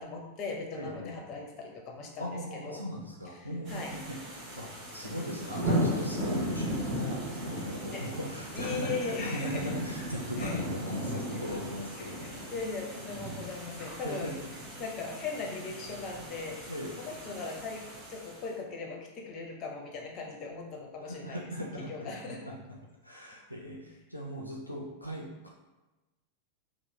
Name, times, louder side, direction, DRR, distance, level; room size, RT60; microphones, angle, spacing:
voice 1, 0.0-2.8 3.4-3.9 5.0-5.1 7.9-8.0 8.5-9.7 10.4-10.6 12.0-14.3 14.8-16.6 17.0-21.4 21.9-22.5, left 4 dB, 35° left, 0 dB, 0.6 m, -39 dB
voice 2, 0.8-1.1 2.2-12.5 13.7-14.4 16.7-16.9 21.0-22.8 23.0-25.5, equal, 90° left, -2 dB, 0.4 m, -39 dB
sound 1, 3.7-18.4, equal, 35° right, 0.9 m, -36 dB
3.0 x 2.0 x 3.2 m, 1.1 s
figure-of-eight pair, 90°, 0 cm